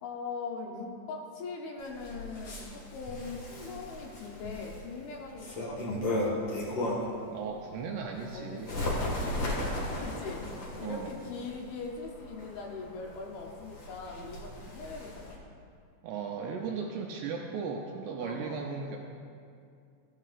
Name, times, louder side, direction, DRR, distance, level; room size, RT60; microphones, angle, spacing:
voice 1, 0.0-6.4 8.3-8.7 9.2-9.7 10.0-10.4 10.8-15.4 18.2-18.6, left 4 dB, 75° left, 0 dB, 2.5 m, -41 dB
Bird, 1.8-7.2 7.7-15.4, left 1 dB, 50° left, 1.7 m, -36 dB
voice 2, 7.3-8.8 10.8-11.1 16.0-19.0, right 5 dB, 80° right, 0 dB, 2.7 m, -36 dB
15.0 x 11.5 x 2.5 m, 2.4 s
omnidirectional pair, 5.0 m